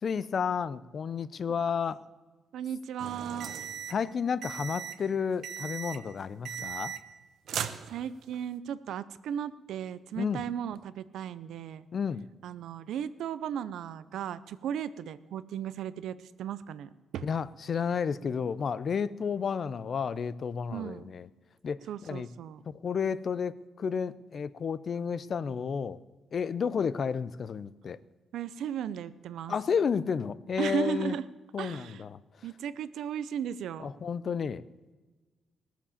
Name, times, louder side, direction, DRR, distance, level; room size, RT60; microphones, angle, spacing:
voice 1, 0.0-2.0 3.9-6.9 10.2-10.4 11.9-12.3 17.2-21.3 21.6-22.3 22.7-26.0 26.3-28.0 29.5-31.2 31.5-32.2 33.8-34.6, left 6 dB, 40° left, 18 dB, 0.5 m, -31 dB
voice 2, 2.5-3.5 7.9-11.9 12.4-17.2 20.7-21.1 21.9-22.6 28.3-29.5 30.6-31.3 31.6-32.0 32.4-33.9, right 9 dB, 85° right, 16 dB, 0.6 m, -36 dB
sound 1, 3.0-4.0 4.4-5.0 5.4-6.1 6.5-7.2 7.5-8.4, right 8 dB, 65° right, 0.9 m, -38 dB
18.5 x 7.2 x 7.2 m, 1.3 s
cardioid pair, 160°, 0 cm